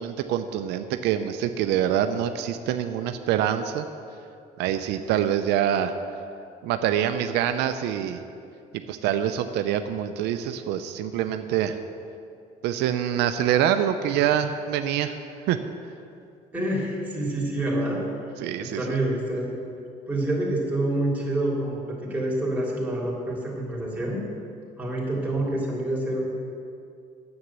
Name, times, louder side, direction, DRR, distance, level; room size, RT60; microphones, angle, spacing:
voice 1, 0.0-3.9 4.6-5.9 6.6-8.2 8.9-11.8 12.6-15.2 15.5-15.6 18.4-19.0, right 10 dB, 85° right, 8 dB, 0.6 m, -25 dB
voice 2, 16.5-18.0 18.6-19.6 20.1-24.2 24.8-26.2, right 1 dB, 10° right, -5 dB, 3.3 m, -27 dB
9.7 x 8.1 x 7.4 m, 2.5 s
cardioid pair, 110°, 17 cm